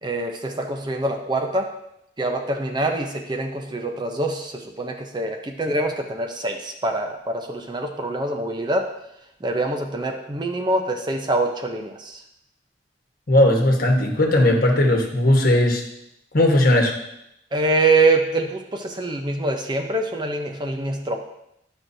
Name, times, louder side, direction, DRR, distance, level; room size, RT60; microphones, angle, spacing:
voice 1, 0.0-1.7 2.2-8.9 9.4-12.2 17.5-21.2, right 2 dB, 25° right, 4 dB, 0.6 m, -24 dB
voice 2, 13.3-15.8 16.3-16.9, left 1 dB, 50° left, 1 dB, 1.2 m, -17 dB
11.5 x 6.1 x 2.7 m, 0.82 s
head